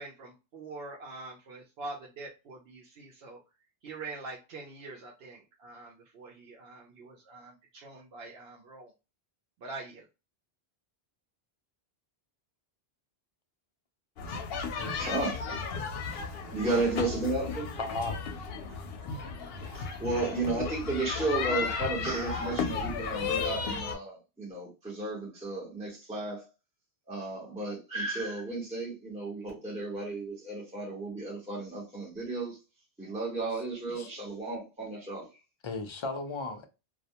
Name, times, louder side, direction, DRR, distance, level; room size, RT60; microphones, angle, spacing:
voice 1, 0.0-3.4 3.8-8.9 9.6-10.0, right 3 dB, 75° right, 0.8 m, -44 dB
sound 1, 14.2-23.9, left 5 dB, 70° left, 0.8 m, -34 dB
voice 2, 15.0-15.5 16.5-17.7 18.7-18.8 19.7-26.5 27.1-32.6 33.0-35.3, right 2 dB, 5° right, 0.9 m, -33 dB
voice 3, 17.8-18.2 33.9-34.1 35.6-36.7, left 3 dB, 45° left, 0.4 m, -35 dB
2.3 x 2.1 x 2.8 m
omnidirectional pair, 1.0 m